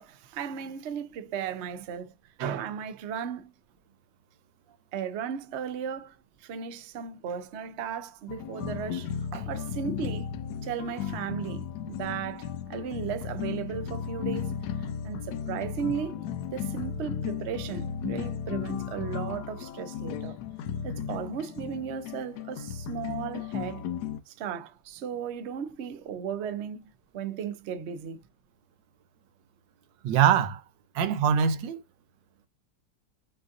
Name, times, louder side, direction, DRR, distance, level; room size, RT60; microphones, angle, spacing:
voice 1, 0.0-2.1 2.4-3.5 4.9-6.1 6.4-9.1 9.5-10.3 10.6-14.5 14.8-20.4 20.8-23.9 24.3-28.2, right 8 dB, 60° right, 0.7 m, -35 dB
sound 1, 8.3-24.2, left 8 dB, 70° left, 1.1 m, -35 dB
voice 2, 30.0-30.6 30.9-31.8, right 8 dB, 85° right, 1.4 m, -23 dB
6.0 x 2.6 x 2.6 m
omnidirectional pair, 2.0 m